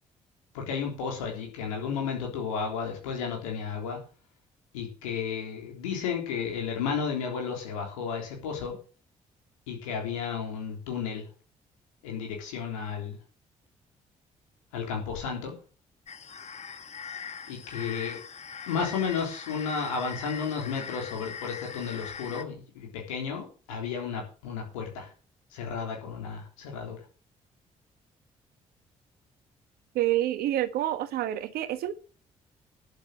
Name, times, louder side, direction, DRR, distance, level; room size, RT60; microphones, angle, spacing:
voice 1, 0.5-4.0 4.7-8.7 9.7-11.3 12.0-13.2 14.7-15.5 17.5-18.2 18.7-25.1 25.5-27.0, left 6 dB, 80° left, 0 dB, 3.6 m, -33 dB
sound 1, 16.1-22.4, left 6 dB, 40° left, 1.5 m, -41 dB
voice 2, 29.9-31.9, right 13 dB, 65° right, 13 dB, 1.2 m, -28 dB
11.5 x 7.9 x 6.4 m, 0.38 s
figure-of-eight pair, 40°, 17 cm